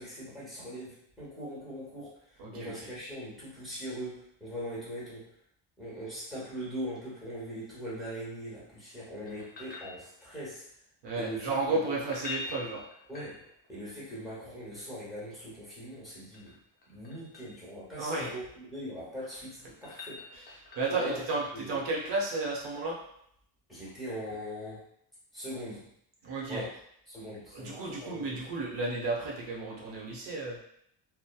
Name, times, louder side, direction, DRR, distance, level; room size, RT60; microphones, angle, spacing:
voice 1, 0.0-5.3 5.8-10.7 11.1-11.9 13.1-16.6 16.9-20.2 20.9-21.2 21.5-21.7 23.7-24.8 25.3-25.9 26.5-26.7 27.1-28.4, equal, ahead, -8 dB, 0.9 m, -41 dB
voice 2, 2.4-2.9 11.0-12.8 18.0-18.3 20.3-20.4 20.8-23.0 26.2-26.6 27.5-30.6, right 3 dB, 65° right, -3 dB, 0.9 m, -33 dB
sound 1, 9.3-10.5 12.0-13.8 15.9-17.6 19.0-21.1 23.8-23.9, left 4 dB, 20° left, 0.4 m, -45 dB
2.8 x 2.1 x 2.2 m, 0.71 s
cardioid pair, 165°, 45 cm